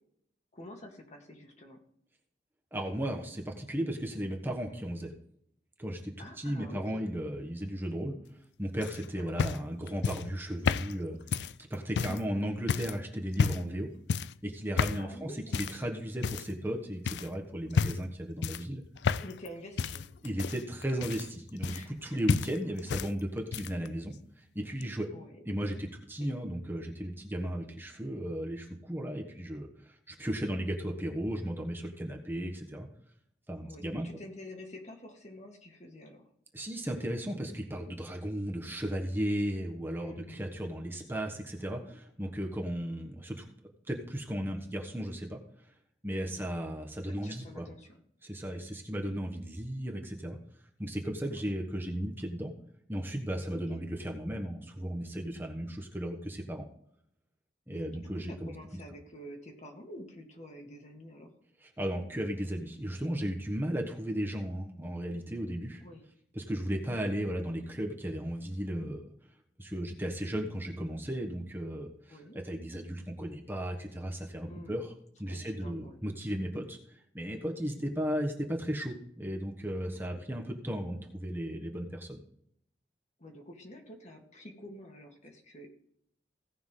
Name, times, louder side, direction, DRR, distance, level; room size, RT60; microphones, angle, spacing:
voice 1, 0.5-1.8 6.2-7.1 9.1-9.5 12.0-12.3 15.0-15.7 19.2-20.1 21.7-22.2 25.1-25.4 26.2-26.4 33.6-36.3 40.0-40.5 46.3-46.5 47.0-48.0 48.4-48.6 51.3-51.5 53.7-53.8 57.7-61.3 65.8-66.1 72.1-72.4 74.5-74.8 75.3-76.0 77.7-77.8 79.9-80.2 83.2-85.7, left 1 dB, 40° left, 2 dB, 2.0 m, -48 dB
voice 2, 2.7-5.1 5.8-8.2 8.6-13.9 14.4-18.8 20.2-21.7 22.0-24.2 24.5-25.1 25.4-32.9 33.5-34.1 36.5-43.4 43.9-45.4 46.0-47.7 48.2-50.4 50.8-52.5 52.9-56.7 57.7-58.5 61.8-65.8 66.3-69.1 69.6-74.9 75.2-82.2, equal, 10° right, 1 dB, 1.3 m, -35 dB
sound 1, 8.8-12.2 12.7-13.0 13.3-13.7 14.1-14.4 14.8-15.1 15.5-15.8 16.2-16.7 17.1-17.3 17.7-18.1 18.4-19.5 19.8-22.0 22.3-23.1 23.4-23.9 24.8-24.9, left 5 dB, 70° left, 0.4 m, -31 dB
17.0 x 5.8 x 3.8 m, 0.71 s
head